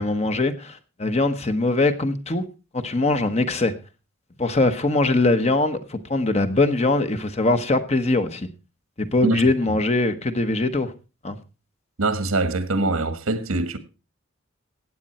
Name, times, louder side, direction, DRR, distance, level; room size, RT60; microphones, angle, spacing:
voice 1, 0.0-2.4 2.7-3.7 4.4-8.5 9.0-10.9 11.2-11.4, left 2 dB, 30° left, 1.1 m, -22 dB
voice 2, 12.0-13.8, right 2 dB, 80° right, 1.5 m, -23 dB
15.5 x 9.0 x 4.2 m
head